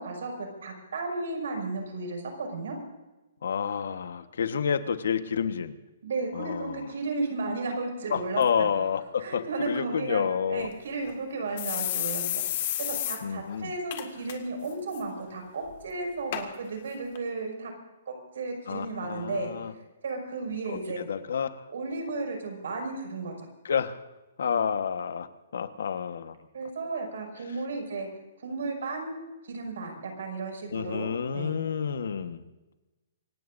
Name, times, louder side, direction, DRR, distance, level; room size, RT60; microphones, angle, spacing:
voice 1, 0.0-2.8 6.0-8.7 9.2-17.7 18.1-19.5 20.0-21.0 21.7-23.3 26.5-28.1 28.4-29.2 29.5-31.6, right 3 dB, 70° right, 2 dB, 6.1 m, -34 dB
voice 2, 3.4-5.7 6.3-6.9 8.1-10.7 13.2-13.7 18.7-19.7 21.0-21.6 23.6-24.0 24.4-25.3 25.5-26.4 30.7-32.4, left 7 dB, 70° left, 10 dB, 1.3 m, -29 dB
sound 1, 10.6-10.7 11.1-11.2 11.6-13.2 13.5-13.6 13.9-14.3 14.7-15.0 15.7-15.8 16.3-16.4 17.2-17.3, left 12 dB, 35° left, 1.9 m, -31 dB
27.0 x 17.0 x 2.7 m, 1.1 s
hypercardioid pair, 175°, 0 cm